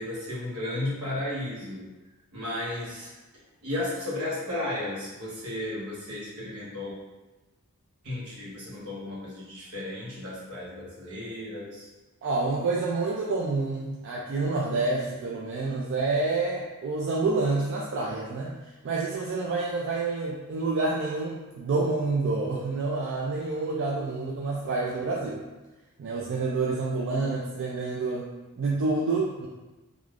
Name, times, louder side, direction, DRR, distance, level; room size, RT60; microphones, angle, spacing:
voice 1, 0.0-1.9 2.3-3.1 3.6-6.9 8.0-11.9, left 1 dB, 75° right, -6 dB, 1.0 m, -34 dB
voice 2, 12.2-18.5 18.8-25.4 26.0-28.3 28.6-29.5, right 3 dB, 55° right, -4 dB, 0.3 m, -28 dB
3.2 x 2.4 x 2.4 m, 1.1 s
head